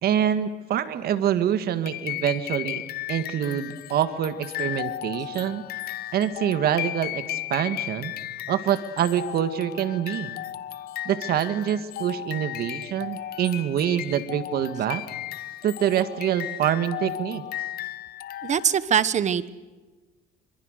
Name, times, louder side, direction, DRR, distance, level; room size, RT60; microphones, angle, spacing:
voice 1, 0.0-2.8 3.1-5.6 6.1-8.1 8.5-10.3 11.1-15.0 15.6-17.4, right 10 dB, 65° right, 11 dB, 1.8 m, -25 dB
sound 1, 1.9-18.9, left 13 dB, 65° left, 1.1 m, -35 dB
voice 2, 18.4-19.5, right 8 dB, 45° right, 16 dB, 1.2 m, -22 dB
26.0 x 26.0 x 6.6 m, 1.2 s
cardioid pair, 110°, 17 cm